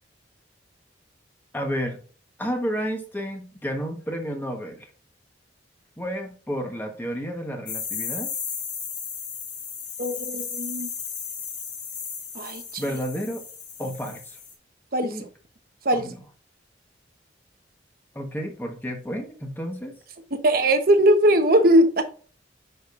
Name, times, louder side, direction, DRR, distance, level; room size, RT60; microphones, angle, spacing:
voice 1, 1.5-2.0 2.4-4.9 6.0-8.3 12.8-13.4 13.8-14.4 15.0-15.3 15.9-16.2 18.1-19.9, equal, 10° left, 2 dB, 1.3 m, -31 dB
sound 1, 7.7-14.5, left 6 dB, 70° left, 2.7 m, -35 dB
voice 2, 10.0-10.9 12.3-12.8 14.9-15.3 15.8-16.1 20.4-22.0, right 1 dB, 55° right, 6 dB, 1.1 m, -20 dB
10.0 x 5.1 x 2.6 m, 0.39 s
head